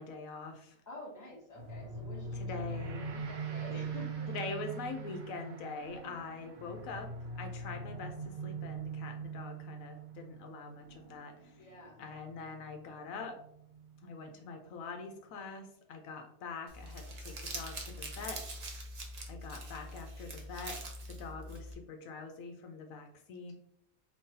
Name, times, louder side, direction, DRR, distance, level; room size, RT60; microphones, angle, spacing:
voice 1, 0.0-0.8 2.0-3.0 4.3-11.6 12.0-13.4 14.0-18.4 19.3-23.5, left 4 dB, 75° left, 5 dB, 1.0 m, -44 dB
voice 2, 0.9-4.3 11.5-12.0 21.2-21.5, left 1 dB, 15° left, -3 dB, 0.8 m, -49 dB
sound 1, 1.5-14.3, right 4 dB, 65° right, 1.5 m, -42 dB
Gong, 2.7-11.9, right 4 dB, 80° right, 1.1 m, -57 dB
Crumpling crinkling, 16.7-21.7, right 1 dB, 50° right, 0.5 m, -43 dB
3.7 x 3.0 x 2.7 m, 0.70 s
omnidirectional pair, 1.5 m